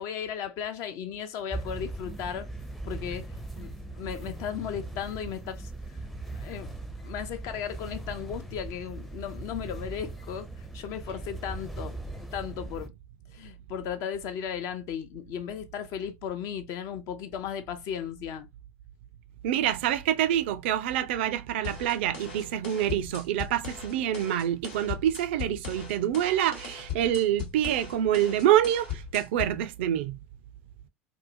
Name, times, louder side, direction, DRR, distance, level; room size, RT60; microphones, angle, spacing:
voice 1, 0.0-2.5 2.8-6.7 7.0-12.0 12.3-12.9 13.3-18.5, left 8 dB, 55° left, 0.5 m, -36 dB
sound 1, 1.5-12.9, right 2 dB, ahead, 0.5 m, -39 dB
voice 2, 19.4-30.2, right 11 dB, 65° right, 0.3 m, -26 dB
sound 2, 21.6-29.6, left 8 dB, 70° left, 1.1 m, -39 dB
2.6 x 2.2 x 2.6 m
figure-of-eight pair, 70°, 6 cm